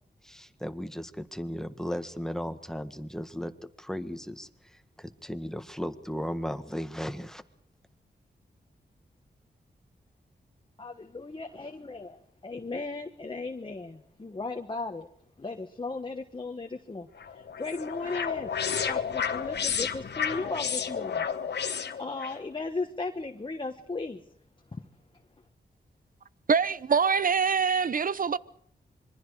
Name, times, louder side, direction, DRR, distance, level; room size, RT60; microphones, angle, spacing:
voice 1, 0.2-3.5 3.8-7.4, equal, 5° left, 1.6 m, -36 dB
voice 2, 10.8-15.1 15.4-18.5 18.9-21.3 22.0-24.2 24.7-24.9, left 3 dB, 30° left, 1.4 m, -36 dB
Space Beam Cloak Warp Jump etc, 17.2-22.4, left 7 dB, 75° left, 1.4 m, -31 dB
voice 3, 26.5-28.4, right 6 dB, 55° right, 0.8 m, -24 dB
26.5 x 23.0 x 4.9 m
cardioid pair, 70°, 18 cm